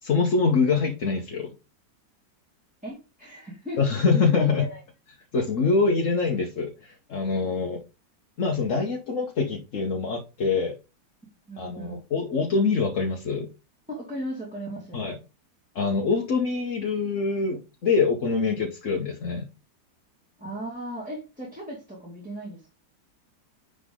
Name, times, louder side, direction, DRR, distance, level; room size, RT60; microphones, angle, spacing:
voice 1, 0.0-1.5 3.8-4.7 5.3-7.8 8.4-10.7 11.6-13.5 14.9-15.2 15.7-19.5, left 4 dB, 50° left, 2 dB, 1.2 m, -24 dB
voice 2, 2.8-3.8 4.1-4.8 11.5-12.0 13.9-15.0 20.4-22.7, right 1 dB, 5° right, -3 dB, 2.0 m, -36 dB
10.0 x 4.0 x 3.7 m, 0.29 s
omnidirectional pair, 2.0 m